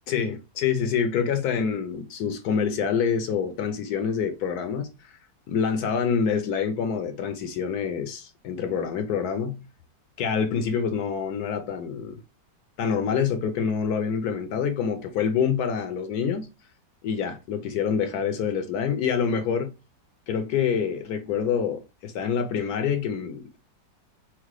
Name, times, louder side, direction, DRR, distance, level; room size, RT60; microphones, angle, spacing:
voice 1, 0.1-5.2 5.5-9.7 10.2-12.2 12.8-16.5 17.0-19.7 20.3-23.6, left 7 dB, 70° left, 1.0 m, -26 dB
4.5 x 2.1 x 3.1 m
omnidirectional pair, 1.9 m